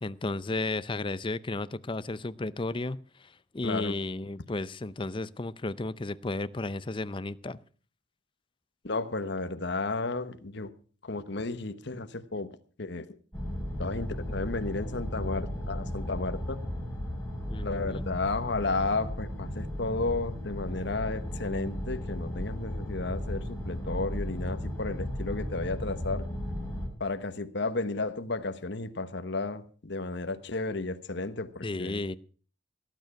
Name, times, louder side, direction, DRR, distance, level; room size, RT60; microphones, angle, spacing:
voice 1, 0.0-7.6 17.5-18.1 31.6-32.2, left 2 dB, 25° left, 0.6 m, -33 dB
voice 2, 3.6-4.0 8.8-10.7 11.0-13.2 13.8-16.6 17.6-26.3 27.0-32.0, left 3 dB, 60° left, 1.2 m, -33 dB
sound 1, 13.3-26.9, left 1 dB, 10° left, 4.6 m, -35 dB
18.0 x 9.3 x 5.9 m
head